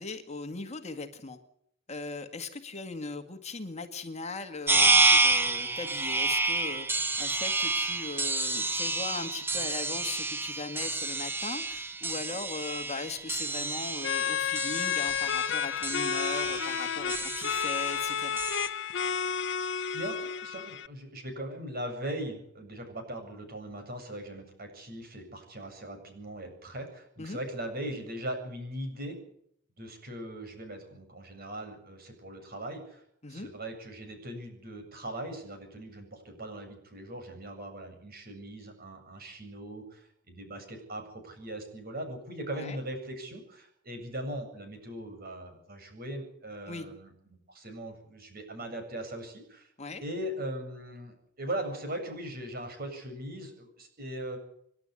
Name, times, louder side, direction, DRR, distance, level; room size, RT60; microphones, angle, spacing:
voice 1, 0.0-1.4 1.9-6.9 7.2-18.4 27.2-27.4 33.2-33.5 42.5-42.8 46.7-46.9 49.8-50.0, left 3 dB, 35° left, 7 dB, 1.9 m, -39 dB
sound 1, 4.7-18.7, right 3 dB, 10° right, 1.3 m, -29 dB
sound 2, 14.0-20.9, left 7 dB, 65° left, 0.8 m, -31 dB
voice 2, 20.4-29.2 29.8-33.0 33.3-49.7 50.0-54.4, right 1 dB, 50° right, 5 dB, 7.6 m, -39 dB
28.5 x 11.5 x 9.6 m, 0.69 s
head